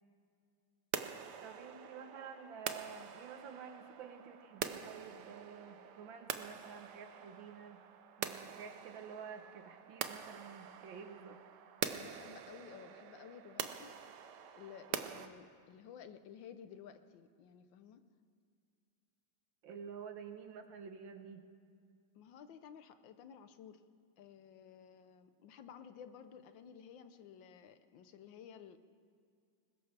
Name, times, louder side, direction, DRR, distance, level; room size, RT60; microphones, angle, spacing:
sound 1, 0.9-15.3, right 9 dB, 70° right, 1.3 m, -45 dB
voice 1, 1.4-7.8 8.2-11.4 19.6-21.4, right 6 dB, 90° right, 7 dB, 1.9 m, -50 dB
voice 2, 12.0-13.9 14.2-18.0 22.1-23.8 24.2-28.8, left 8 dB, 85° left, 10 dB, 1.5 m, -54 dB
21.5 x 19.5 x 3.4 m, 2.3 s
omnidirectional pair, 2.0 m